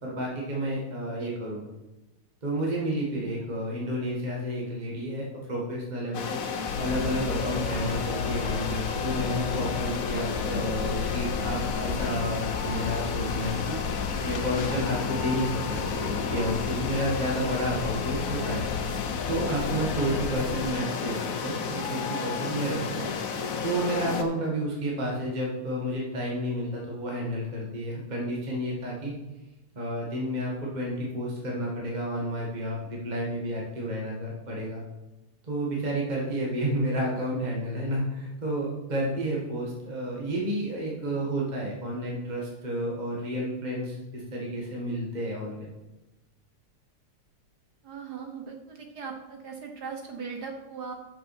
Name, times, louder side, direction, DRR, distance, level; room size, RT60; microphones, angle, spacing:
voice 1, 0.0-1.7 2.4-13.8 14.2-18.6 19.3-23.1 23.6-29.1 29.7-34.8 35.4-45.7, equal, 20° right, -3 dB, 1.7 m, -31 dB
sound 1, 6.1-24.2, left 5 dB, 55° left, 1.0 m, -32 dB
sound 2, 6.7-20.7, left 6 dB, 85° left, 1.5 m, -35 dB
voice 2, 47.8-50.9, right 5 dB, 60° right, 3 dB, 1.3 m, -39 dB
11.5 x 6.4 x 4.3 m, 1.0 s
omnidirectional pair, 2.4 m